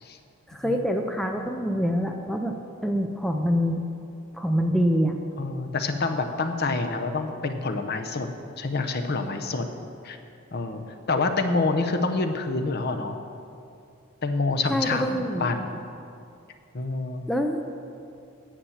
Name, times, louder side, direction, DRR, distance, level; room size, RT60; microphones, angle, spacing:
voice 1, 0.5-2.6 2.8-3.8 4.3-5.2 14.7-15.5 17.3-17.7, equal, ahead, 3 dB, 0.5 m, -25 dB
voice 2, 5.4-8.3 8.6-9.7 10.0-10.2 10.5-10.8 11.1-13.2 14.2-15.7 16.7-17.3, left 3 dB, 50° left, 6 dB, 0.7 m, -27 dB
9.8 x 7.2 x 7.2 m, 2.5 s
head